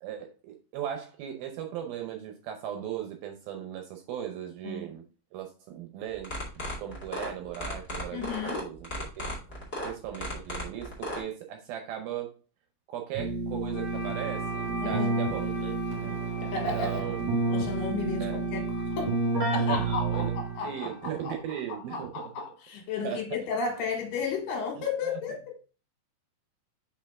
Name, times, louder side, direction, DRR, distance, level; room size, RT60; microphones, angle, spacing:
voice 1, 0.0-5.0 5.3-6.3 6.8-9.3 9.8-12.3 12.9-16.2 16.5-17.2 18.2-18.4 19.6-20.3 20.6-22.3 23.0-23.4 24.8-25.2, right 10 dB, 75° right, 2.3 m, -38 dB
sound 1, 6.1-11.2, left 1 dB, 30° left, 1.1 m, -35 dB
voice 2, 8.1-8.7 14.8-15.2 16.5-17.0 17.5-18.6 18.9-19.1 19.5-21.4 21.7-25.6, left 5 dB, 75° left, 3.5 m, -33 dB
Keyboard (musical), 13.1-20.7, right 3 dB, 40° right, 2.4 m, -30 dB
Wind instrument woodwind instrument, 13.7-21.8, equal, 50° left, 2.1 m, -42 dB
5.8 x 5.4 x 3.5 m
omnidirectional pair, 4.8 m